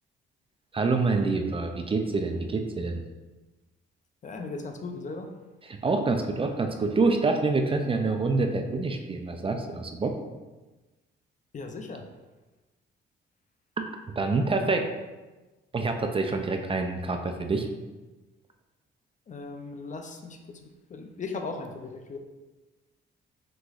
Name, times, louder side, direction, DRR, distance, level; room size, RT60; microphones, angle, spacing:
voice 1, 0.7-3.0 5.7-10.1 13.8-13.9 14.2-14.9 15.7-17.7, right 3 dB, 25° right, 5 dB, 0.4 m, -26 dB
voice 2, 4.2-5.3 11.5-12.1 19.3-22.2, left 3 dB, 40° left, 4 dB, 0.5 m, -38 dB
6.0 x 3.1 x 2.5 m, 1.2 s
cardioid pair, 90°, 20 cm